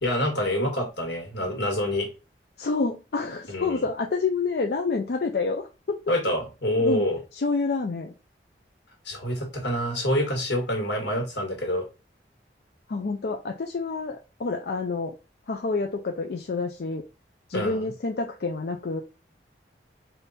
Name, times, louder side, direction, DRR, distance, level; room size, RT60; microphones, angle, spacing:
voice 1, 0.0-2.1 3.5-3.8 6.1-7.2 9.1-11.9 17.5-17.9, left 1 dB, 90° left, 2 dB, 1.7 m, -26 dB
voice 2, 2.6-6.0 6.8-7.0 7.3-8.1 12.9-15.1 15.5-17.0 17.5-19.0, left 4 dB, 60° left, 2 dB, 0.4 m, -28 dB
3.4 x 2.7 x 4.1 m, 0.30 s
head